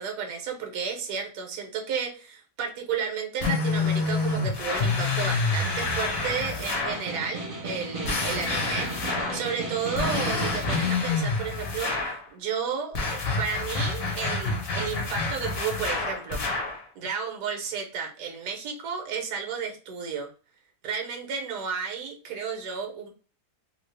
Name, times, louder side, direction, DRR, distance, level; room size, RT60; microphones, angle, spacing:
voice 1, 0.0-8.9 9.3-16.4 17.0-20.3 20.8-23.1, right 6 dB, 75° right, 3 dB, 1.3 m, -32 dB
sound 1, 3.4-7.1 8.0-9.5 9.9-12.2 12.9-16.8, left 3 dB, 50° left, 0.9 m, -28 dB
Snare drum, 6.6-11.1, right 2 dB, 30° right, 0.6 m, -35 dB
2.8 x 2.8 x 3.1 m, 0.37 s
omnidirectional pair, 1.7 m